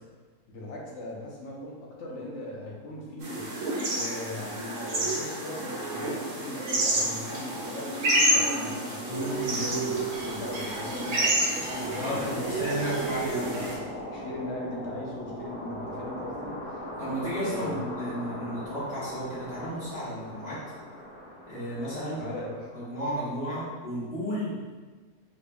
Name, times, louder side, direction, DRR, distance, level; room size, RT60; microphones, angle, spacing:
voice 1, 0.5-3.5 3.9-12.6 13.5-13.8 14.1-16.6 17.4-17.8 22.2-22.7, left 1 dB, 55° left, -3 dB, 1.0 m, -39 dB
sound 1, 3.2-13.7, right 1 dB, 70° right, 1.4 m, -29 dB
voice 2, 9.0-9.9 11.9-13.6 17.0-20.6 21.5-22.2 22.7-24.5, equal, 40° left, -11 dB, 1.7 m, -33 dB
sound 2, 9.3-23.1, equal, 10° right, 1.2 m, -40 dB
4.1 x 3.4 x 2.3 m, 1.4 s
omnidirectional pair, 1.7 m